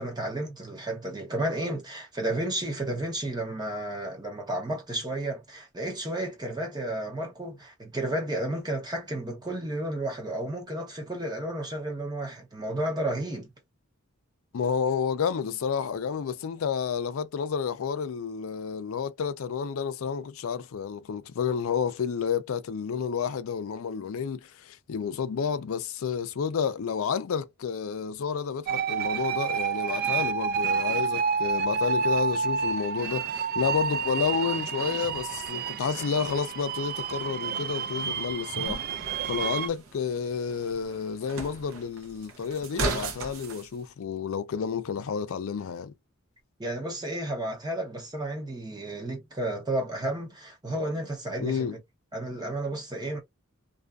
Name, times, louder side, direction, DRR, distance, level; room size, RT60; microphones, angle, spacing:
voice 1, 0.0-13.5 46.6-51.7 52.1-53.2, right 1 dB, 20° right, 0.7 m, -32 dB
voice 2, 14.5-38.8 39.3-45.9 51.4-51.8, left 6 dB, 80° left, 0.4 m, -30 dB
sound 1, 28.7-39.7, right 6 dB, 45° right, 0.4 m, -29 dB
sound 2, 38.7-43.7, right 3 dB, 85° right, 0.8 m, -36 dB
2.6 x 2.4 x 2.2 m
head